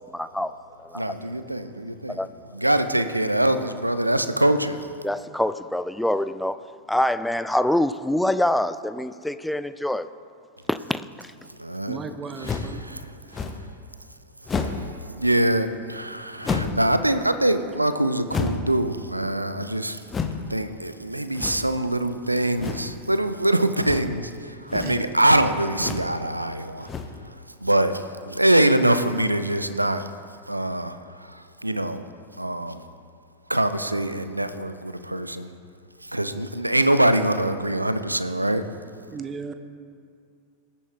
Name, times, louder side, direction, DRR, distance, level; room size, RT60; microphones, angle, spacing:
voice 1, 0.1-0.5 0.8-1.1 2.2-2.3 5.0-6.6 6.9-10.1 10.7-11.3, left 1 dB, 5° left, 0.4 m, -25 dB
voice 2, 0.9-2.2 2.5-4.8 11.6-12.0 12.9-13.0 13.3-13.4 14.6-20.0 20.5-26.9 27.3-27.4 27.6-30.1 30.5-31.0 31.3-32.0 32.4-32.8 33.5-35.5 36.1-38.6, right 1 dB, 85° right, 0.6 m, -24 dB
voice 3, 11.8-12.8 24.8-25.0 39.1-39.5, right 5 dB, 20° right, 0.9 m, -35 dB
sound 1, 12.4-12.8 13.3-13.7 14.4-14.9 16.4-16.9 18.3-18.8 20.1-20.4 21.3-21.8 22.6-22.9 23.8-24.2 24.6-25.0 25.8-26.1 26.8-27.3, left 5 dB, 20° left, 0.9 m, -30 dB
20.5 x 8.5 x 3.4 m
figure-of-eight pair, 90°, 0 cm